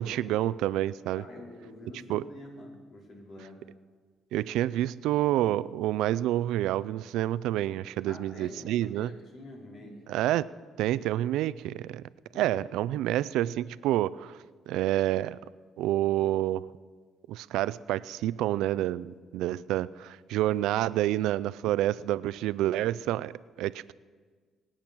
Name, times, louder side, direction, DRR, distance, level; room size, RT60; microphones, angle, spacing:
voice 1, 0.0-1.2 2.1-2.2 4.3-9.1 10.1-10.5 10.8-12.0 12.3-14.3 14.7-15.4 15.8-16.7 17.3-23.9, right 14 dB, 85° right, 17 dB, 0.4 m, -28 dB
voice 2, 1.1-3.7 8.1-10.0 12.3-12.6, left 1 dB, 60° left, -1 dB, 4.7 m, -46 dB
23.0 x 8.9 x 6.1 m, 1.5 s
cardioid pair, 80°, 0 cm